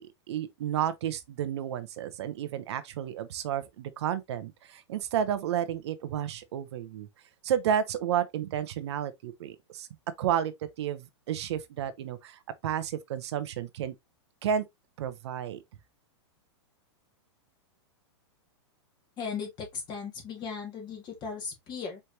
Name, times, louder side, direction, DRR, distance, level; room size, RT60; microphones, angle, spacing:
voice 1, 0.0-7.1 7.4-9.9 10.2-10.5 10.8-13.9 14.4-14.6 15.0-15.6, right 9 dB, 70° right, 0.7 m, -31 dB
voice 2, 19.2-22.0, left 5 dB, 30° left, 1.7 m, -37 dB
4.6 x 3.3 x 2.7 m
hypercardioid pair, 130°, 15 cm